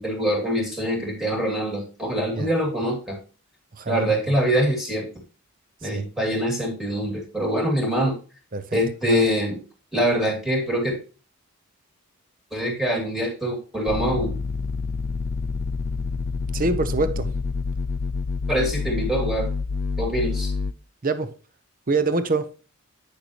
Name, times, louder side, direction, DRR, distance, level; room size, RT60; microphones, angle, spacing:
voice 1, 0.0-3.2 3.9-5.1 5.8-8.2 8.7-9.6 9.9-11.0 12.5-14.3 18.5-19.5 20.0-20.5, equal, ahead, 2.4 m, -24 dB
voice 2, 3.8-4.4 5.8-6.0 8.5-9.2 16.5-17.3 21.0-21.3 21.9-22.5, right 3 dB, 40° right, 0.7 m, -25 dB
sound 1, 13.9-20.7, left 4 dB, 45° left, 0.4 m, -27 dB
8.3 x 6.6 x 2.9 m
head